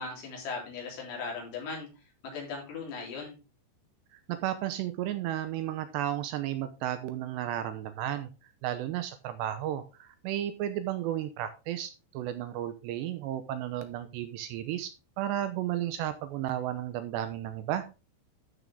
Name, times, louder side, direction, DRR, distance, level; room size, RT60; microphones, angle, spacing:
voice 1, 0.0-1.9 2.2-3.3, left 4 dB, 65° left, -2 dB, 5.4 m, -38 dB
voice 2, 4.1-8.3 8.6-14.9 15.2-17.8, right 12 dB, 80° right, 10 dB, 2.7 m, -33 dB
12.5 x 6.2 x 3.5 m, 0.30 s
omnidirectional pair, 5.4 m